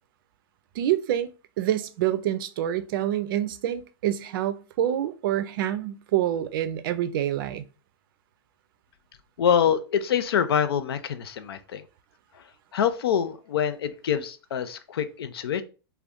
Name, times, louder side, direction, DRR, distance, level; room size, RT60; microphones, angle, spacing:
voice 1, 0.8-1.3 1.6-7.6, right 12 dB, 60° right, 0.4 m, -27 dB
voice 2, 9.4-11.9 12.3-12.4 12.7-15.6, left 8 dB, 80° left, 0.4 m, -25 dB
2.5 x 2.2 x 3.5 m
hypercardioid pair, 110°, 13 cm